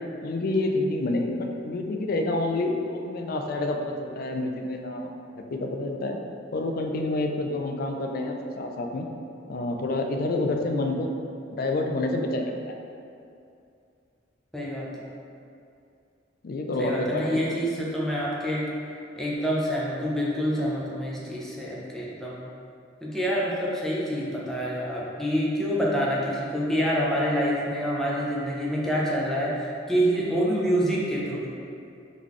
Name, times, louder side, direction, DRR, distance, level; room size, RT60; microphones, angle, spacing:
voice 1, 0.2-5.1 5.5-6.2 6.5-9.1 9.5-11.1 11.5-12.8 16.4-17.4, left 2 dB, 50° left, 3 dB, 0.4 m, -28 dB
voice 2, 14.5-14.9 16.8-18.7 19.2-22.4 23.0-31.5, equal, ahead, -6 dB, 0.6 m, -27 dB
3.8 x 3.7 x 3.1 m, 2.5 s
head